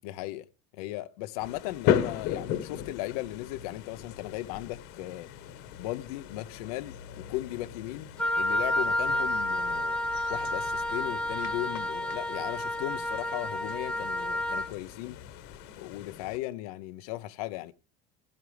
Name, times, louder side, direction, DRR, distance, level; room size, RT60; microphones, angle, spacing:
voice 1, 0.0-0.4 0.7-5.3 5.8-10.0 10.3-15.2 15.8-17.7, left 16 dB, 85° left, 0.8 m, -37 dB
sound 1, 1.4-16.4, left 10 dB, 70° left, 1.4 m, -37 dB
Wind instrument woodwind instrument, 8.2-14.7, left 1 dB, 5° left, 0.7 m, -30 dB
16.0 x 10.5 x 3.3 m
supercardioid pair, 115°, 19 cm